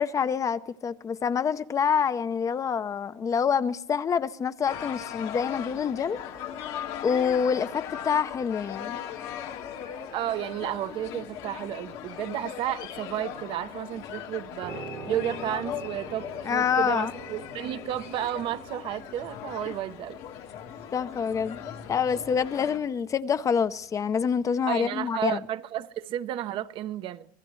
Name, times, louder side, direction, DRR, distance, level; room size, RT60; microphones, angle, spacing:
voice 1, 0.0-6.2 7.0-9.0 16.4-17.1 19.7-19.8 20.9-21.6 21.9-25.4, left 7 dB, 30° left, 0.6 m, -26 dB
sound 1, 4.7-22.8, left 9 dB, 70° left, 1.7 m, -39 dB
Dog, 9.0-11.4 11.7-17.6, left 11 dB, 85° left, 2.8 m, -51 dB
voice 2, 10.1-20.2 24.7-27.3, right 12 dB, 55° right, 0.7 m, -32 dB
Piano, 14.6-24.0 24.3-24.5, right 6 dB, 90° right, 3.3 m, -46 dB
25.0 x 16.5 x 3.2 m
supercardioid pair, 100°, 10 cm